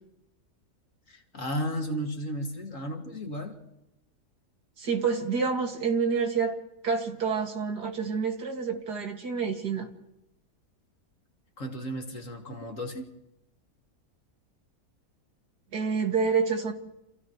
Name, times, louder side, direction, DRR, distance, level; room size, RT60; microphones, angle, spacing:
voice 1, 1.1-3.6 11.6-13.1, equal, 50° left, 2 dB, 2.7 m, -34 dB
voice 2, 4.8-6.6 6.8-9.9 15.7-16.7, right 5 dB, 80° right, 3 dB, 2.8 m, -28 dB
30.0 x 28.5 x 3.2 m, 0.90 s
omnidirectional pair, 1.7 m